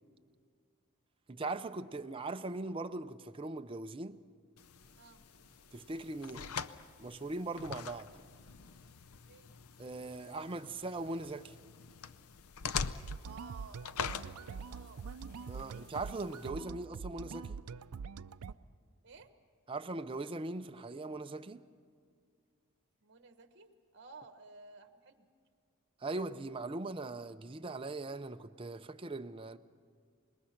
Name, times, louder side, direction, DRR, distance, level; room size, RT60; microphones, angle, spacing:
voice 1, 1.3-4.2 5.7-6.5 7.0-8.1 9.8-11.5 15.5-17.6 19.7-21.6 26.0-29.6, right 2 dB, 25° right, 0.5 m, -40 dB
sound 1, 4.6-16.5, left 6 dB, 75° left, 0.6 m, -44 dB
sound 2, 4.8-9.2, equal, 40° left, 1.8 m, -67 dB
sound 3, 13.0-18.5, right 5 dB, 80° right, 0.4 m, -44 dB
voice 2, 13.2-15.1 19.0-19.3 23.0-25.3, right 4 dB, 50° right, 1.2 m, -55 dB
26.0 x 21.0 x 5.9 m
head